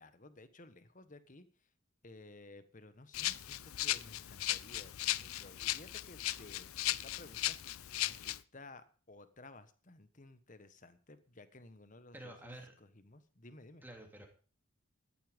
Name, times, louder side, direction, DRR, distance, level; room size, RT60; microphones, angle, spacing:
voice 1, 0.0-1.4 2.0-13.8, left 2 dB, 35° left, 12 dB, 1.3 m, -56 dB
Rattle (instrument), 3.1-8.4, left 14 dB, 80° left, 0.6 m, -37 dB
voice 2, 12.1-12.7 13.8-14.3, right 1 dB, 10° right, 3 dB, 2.7 m, -49 dB
14.5 x 11.5 x 5.3 m, 0.39 s
head